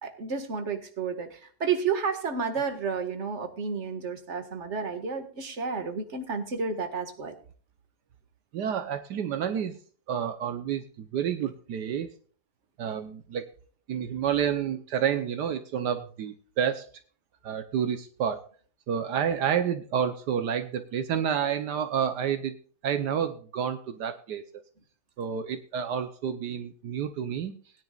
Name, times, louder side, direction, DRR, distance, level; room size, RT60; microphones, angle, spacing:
voice 1, 0.0-7.3, right 5 dB, 45° right, 6 dB, 2.0 m, -31 dB
voice 2, 8.5-9.8 10.1-12.1 12.8-13.5 13.9-16.9 17.4-18.4 18.9-22.5 22.8-24.4 25.2-27.5, right 8 dB, 80° right, 8 dB, 1.5 m, -29 dB
20.5 x 10.5 x 2.4 m, 0.43 s
omnidirectional pair, 1.8 m